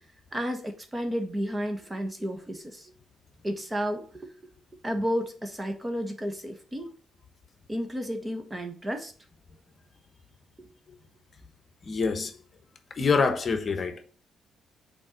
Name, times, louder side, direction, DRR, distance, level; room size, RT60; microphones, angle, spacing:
voice 1, 0.3-2.9 3.4-4.3 4.8-6.9 7.7-9.1 10.6-10.7, equal, 20° right, 1.4 m, -32 dB
voice 2, 11.8-12.4 13.0-14.0, left 4 dB, 40° left, 1.1 m, -26 dB
5.4 x 4.5 x 6.3 m
cardioid pair, 90°, 0 cm